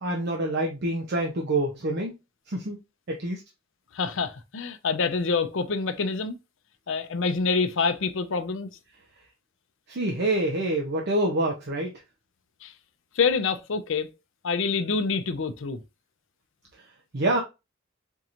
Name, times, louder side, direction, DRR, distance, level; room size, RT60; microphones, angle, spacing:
voice 1, 0.0-2.1 2.5-2.8 3.1-3.4 9.9-11.9 17.1-17.4, right 1 dB, 55° right, 0.7 m, -26 dB
voice 2, 3.9-6.4 6.9-8.7 12.6-12.7 13.1-14.1 14.4-15.8, left 4 dB, 65° left, 0.6 m, -26 dB
4.5 x 2.9 x 2.5 m
head